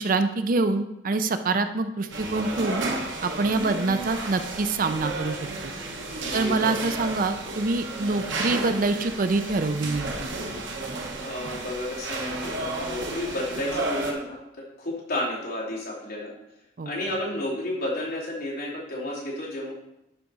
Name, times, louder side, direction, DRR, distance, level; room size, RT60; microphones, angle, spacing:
voice 1, 0.0-2.8 3.2-5.4 5.6-5.7 6.3-10.3 16.8-16.9, right 3 dB, 50° right, 9 dB, 0.5 m, -25 dB
sound 1, 2.1-14.1, right 2 dB, 90° right, 1.3 m, -32 dB
voice 2, 6.2-6.8 11.2-16.3 16.8-19.7, left 1 dB, 55° left, -5 dB, 2.8 m, -32 dB
11.5 x 4.9 x 4.1 m, 0.87 s
head